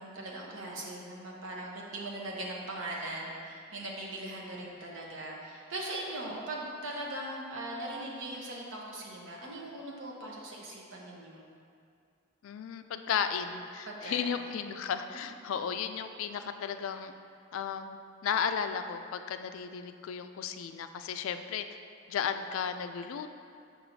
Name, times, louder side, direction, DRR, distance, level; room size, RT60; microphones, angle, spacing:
voice 1, 0.0-11.5 13.9-14.3, right 1 dB, 70° right, -3 dB, 1.0 m, -40 dB
voice 2, 12.4-17.1 17.5-21.6 22.1-23.3, left 7 dB, 80° left, 8 dB, 0.3 m, -34 dB
6.2 x 5.9 x 2.7 m, 2.3 s
head